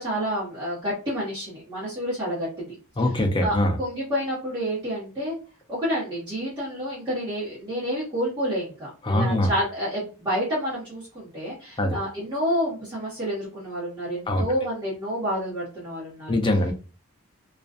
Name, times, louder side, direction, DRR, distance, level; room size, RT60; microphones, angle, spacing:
voice 1, 0.0-3.1 3.4-5.4 5.7-16.4, equal, 20° right, -10 dB, 1.0 m, -29 dB
voice 2, 3.0-3.8 9.0-9.5 11.8-12.0 14.3-14.4 16.3-16.7, left 1 dB, 20° left, 4 dB, 0.4 m, -22 dB
2.4 x 2.3 x 2.3 m, 0.36 s
head